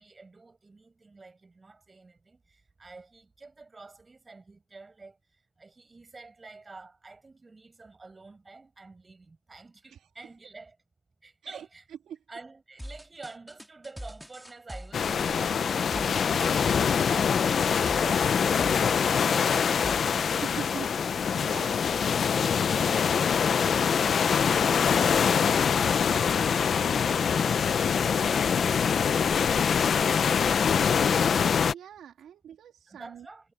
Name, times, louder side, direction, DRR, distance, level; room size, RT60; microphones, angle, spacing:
voice 1, 0.0-10.8 11.2-11.9 12.3-19.9 32.9-33.5, right 3 dB, 25° right, 7.2 m, -49 dB
sound 1, 12.8-20.4, equal, ahead, 2.5 m, -43 dB
sound 2, 14.9-31.7, left 7 dB, 55° left, 0.7 m, -24 dB
voice 2, 20.4-21.8 31.7-33.2, right 9 dB, 75° right, 2.9 m, -42 dB
cardioid pair, 95°, 0 cm